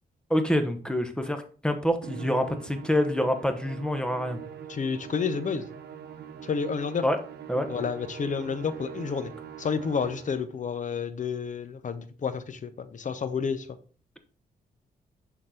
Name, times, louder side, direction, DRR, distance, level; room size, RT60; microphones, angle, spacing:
voice 1, 0.3-4.4 7.0-7.2 7.5-7.7, equal, 5° left, 1.0 m, -26 dB
Musical instrument, 2.0-10.5, right 8 dB, 85° right, 0.9 m, -42 dB
voice 2, 4.7-5.6 6.4-7.0 7.7-9.3 9.6-13.7, left 6 dB, 50° left, 0.8 m, -30 dB
6.4 x 3.9 x 4.3 m
cardioid pair, 85°, 17 cm